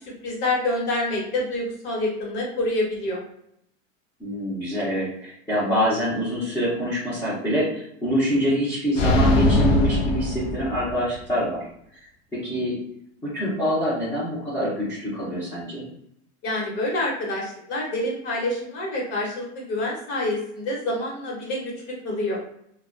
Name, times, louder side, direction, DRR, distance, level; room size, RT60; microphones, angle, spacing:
voice 1, 0.2-3.2 16.4-22.4, left 1 dB, 45° left, -3 dB, 1.0 m, -27 dB
voice 2, 4.2-11.6 12.3-12.8 13.2-15.9, equal, 10° left, -11 dB, 0.5 m, -25 dB
sound 1, 9.0-11.1, left 1 dB, 85° left, 0.6 m, -21 dB
2.4 x 2.2 x 2.4 m, 0.72 s
supercardioid pair, 150°, 37 cm